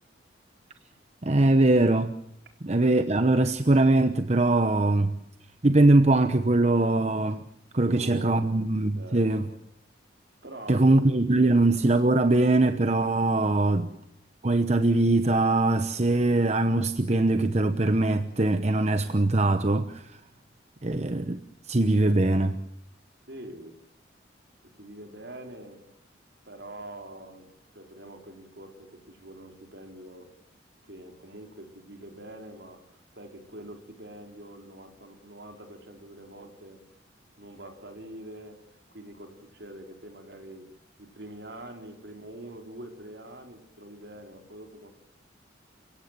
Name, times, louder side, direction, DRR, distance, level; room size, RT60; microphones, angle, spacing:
voice 1, 1.2-2.1 2.6-5.2 5.6-7.4 7.7-9.4 10.7-13.9 14.4-20.2 20.8-21.4 21.7-22.6, right 2 dB, 35° right, 9 dB, 0.9 m, -22 dB
voice 2, 7.8-8.5 9.0-9.6 10.4-11.0 11.4-11.5 23.3-23.7 24.8-25.8 26.4-30.3 30.9-36.8 37.4-38.6 38.9-40.7 41.0-44.9, right 1 dB, 65° right, 4 dB, 4.0 m, -45 dB
29.5 x 17.5 x 7.4 m, 0.74 s
head